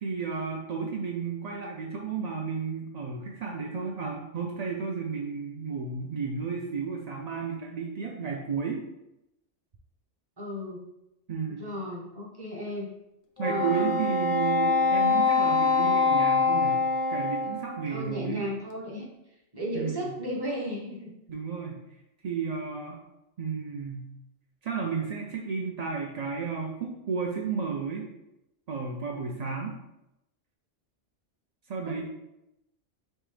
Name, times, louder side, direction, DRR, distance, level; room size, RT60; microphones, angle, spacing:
voice 1, 0.0-8.8 11.3-11.6 13.4-16.8 17.1-18.4 19.7-20.1 21.3-21.8 22.2-23.0 23.4-24.1 24.6-28.1 28.7-29.8 31.7-32.1, right 5 dB, 60° right, 0 dB, 0.4 m, -32 dB
voice 2, 10.4-10.8 11.5-12.9 13.4-14.0 17.9-19.1 19.5-21.1 31.8-32.1, equal, 20° right, -2 dB, 0.8 m, -35 dB
Wind instrument woodwind instrument, 13.4-18.0, left 4 dB, 55° left, 0.6 m, -24 dB
5.4 x 3.0 x 3.3 m, 0.89 s
omnidirectional pair, 1.3 m